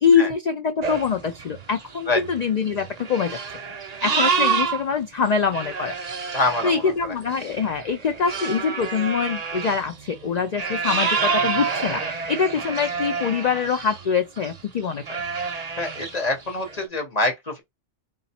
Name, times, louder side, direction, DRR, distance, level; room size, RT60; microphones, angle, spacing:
voice 1, 0.0-3.4 4.0-6.0 6.6-15.2, left 6 dB, 55° left, 0.4 m, -24 dB
sound 1, 0.8-4.8 5.3-14.1 14.4-14.6 15.0-16.8, right 5 dB, 40° right, 0.7 m, -28 dB
voice 2, 6.3-7.1 15.8-17.6, left 2 dB, 35° left, 0.8 m, -25 dB
3.9 x 2.4 x 4.2 m
omnidirectional pair, 1.3 m